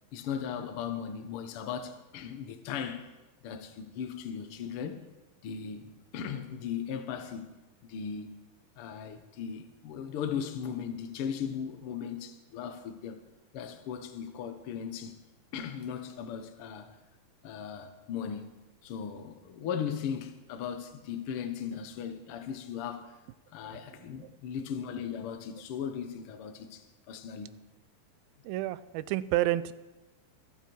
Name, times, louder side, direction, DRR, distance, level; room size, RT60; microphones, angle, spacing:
voice 1, 0.1-3.1 3.4-5.1 5.4-7.6 7.8-8.4 8.8-13.2 13.5-15.2 15.5-17.0 17.4-18.5 18.8-23.1 23.5-27.6, left 7 dB, 80° left, 1.2 m, -37 dB
voice 2, 28.4-29.7, right 15 dB, 90° right, 2.4 m, -30 dB
24.0 x 8.2 x 4.6 m
omnidirectional pair, 4.1 m